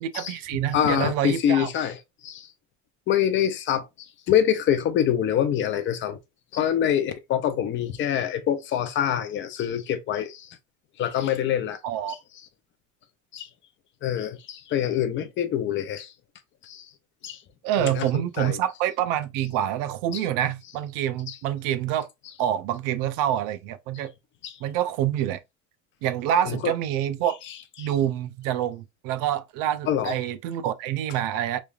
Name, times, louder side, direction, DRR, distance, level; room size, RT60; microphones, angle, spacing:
voice 1, 0.0-1.7 11.8-12.1 17.6-22.1 22.4-24.1 24.6-25.4 26.0-27.4 27.8-31.6, right 11 dB, 80° right, 0.5 m, -26 dB
voice 2, 0.7-2.0 2.2-2.5 3.1-3.9 4.3-6.2 6.5-10.5 11.0-11.8 12.1-12.2 13.3-13.5 14.0-16.1 16.6-16.9 17.2-17.4 17.8-18.6 20.1-20.2 21.3-21.4 24.4-24.6 26.5-26.7 27.8-27.9 29.9-30.2, left 10 dB, 40° left, 0.4 m, -25 dB
3.2 x 2.3 x 2.3 m
cardioid pair, 155°, 32 cm